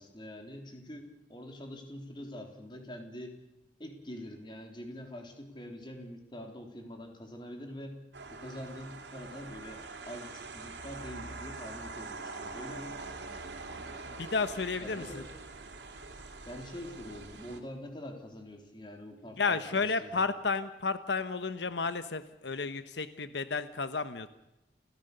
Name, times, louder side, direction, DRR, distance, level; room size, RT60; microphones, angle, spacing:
voice 1, 0.0-3.4 3.8-8.0 8.3-13.0 14.8-15.3 16.4-20.3, left 1 dB, 25° left, 3 dB, 3.5 m, -45 dB
sound 1, 8.1-17.6, right 3 dB, 85° right, 3.0 m, -44 dB
voice 2, 14.1-15.2 19.4-24.3, left 4 dB, 85° left, 12 dB, 1.0 m, -32 dB
29.5 x 16.5 x 6.7 m, 0.89 s
head